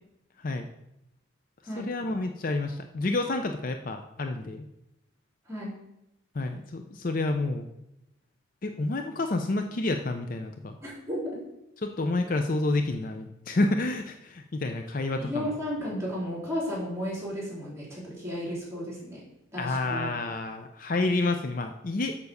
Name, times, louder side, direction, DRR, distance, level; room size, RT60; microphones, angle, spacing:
voice 1, 1.8-4.6 6.3-7.7 8.6-10.8 11.8-15.5 19.6-22.2, left 2 dB, 40° left, 6 dB, 0.5 m, -29 dB
voice 2, 10.8-11.4 15.2-19.2 19.5-20.2, equal, 15° right, -6 dB, 3.8 m, -33 dB
7.0 x 5.4 x 6.6 m, 0.86 s
head